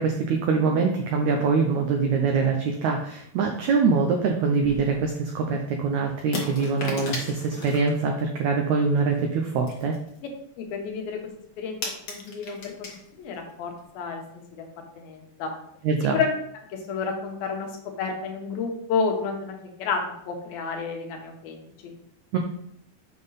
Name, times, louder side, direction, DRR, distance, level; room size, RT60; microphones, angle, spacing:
voice 1, 0.0-10.0 15.8-16.2 22.3-22.4, right 4 dB, 85° right, 2 dB, 1.6 m, -24 dB
sound 1, 4.6-5.1 6.3-7.9 9.0-9.3 9.7-10.4 10.7-10.8 11.1-11.2 11.3-13.1 13.3-13.5 13.8-13.9, left 2 dB, 55° left, 1.1 m, -35 dB
voice 2, 10.6-11.2 11.6-11.8 12.1-12.9 13.2-14.6 15.0-15.5 16.1-16.3 16.7-17.7 18.0-20.0 20.3-21.9, left 5 dB, 80° left, 2 dB, 3.0 m, -30 dB
7.2 x 5.4 x 4.0 m, 0.71 s
omnidirectional pair, 4.2 m